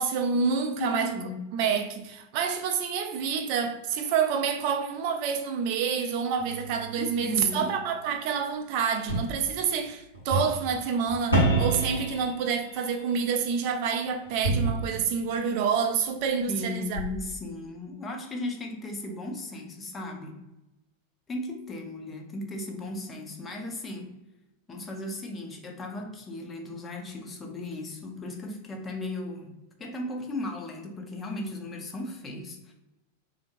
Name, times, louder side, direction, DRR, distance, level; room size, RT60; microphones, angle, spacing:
voice 1, 0.0-1.2 1.5-17.0, right 6 dB, 45° right, 0.3 m, -28 dB
voice 2, 0.7-1.4 7.0-7.7 16.5-20.4 21.3-24.1 24.7-29.5 29.8-32.7, left 2 dB, 20° left, 0.6 m, -36 dB
sound 1, 6.4-7.7 9.1-9.2 10.1-10.7 11.1-13.0 14.2-15.3 16.2-16.3 16.9-17.0, right 2 dB, 85° left, 1.0 m, -28 dB
3.5 x 2.6 x 2.5 m
figure-of-eight pair, 90°, 0 cm